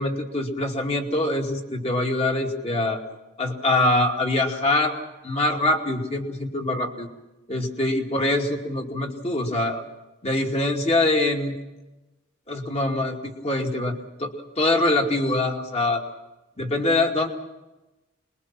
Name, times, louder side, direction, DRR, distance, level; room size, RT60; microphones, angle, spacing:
voice 1, 0.0-3.0 3.4-4.9 5.2-7.1 7.5-9.8 10.2-11.5 12.5-16.0 16.6-17.3, left 2 dB, 30° left, 2 dB, 2.5 m, -24 dB
26.0 x 21.5 x 6.1 m, 1.0 s
head